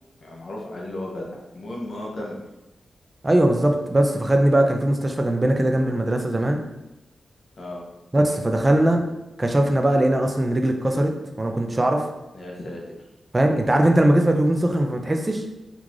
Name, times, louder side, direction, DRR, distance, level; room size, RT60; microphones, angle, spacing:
voice 1, 0.2-2.4 7.6-7.8 12.3-13.0, left 1 dB, 55° left, -2 dB, 0.8 m, -34 dB
voice 2, 3.2-6.6 8.1-9.0 9.4-12.0 13.3-15.4, right 1 dB, 20° right, 3 dB, 0.4 m, -20 dB
3.7 x 2.4 x 3.0 m, 1.0 s
wide cardioid pair, 130°, 0 cm